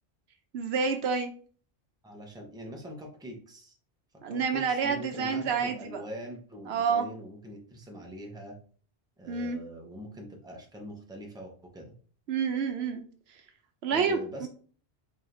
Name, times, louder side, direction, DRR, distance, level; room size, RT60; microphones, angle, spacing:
voice 1, 0.5-1.3 4.2-6.0 6.7-7.0 9.3-9.6 12.3-13.0 13.8-14.5, right 6 dB, 75° right, 7 dB, 0.9 m, -28 dB
voice 2, 2.0-3.7 4.3-8.6 9.2-11.9 13.9-14.5, equal, 5° right, 1 dB, 0.7 m, -43 dB
4.9 x 3.1 x 2.5 m, 0.43 s
omnidirectional pair, 1.1 m